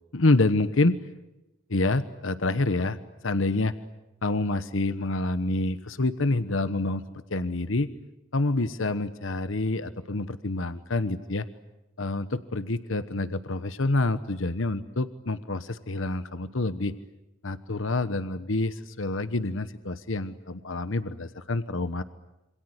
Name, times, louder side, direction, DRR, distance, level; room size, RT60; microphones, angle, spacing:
voice 1, 0.1-1.0 1.7-3.0 3.2-3.7 4.2-7.9 8.3-11.4 12.0-16.9 17.4-22.0, left 2 dB, 80° left, 12 dB, 1.2 m, -27 dB
27.5 x 27.0 x 8.0 m, 0.99 s
head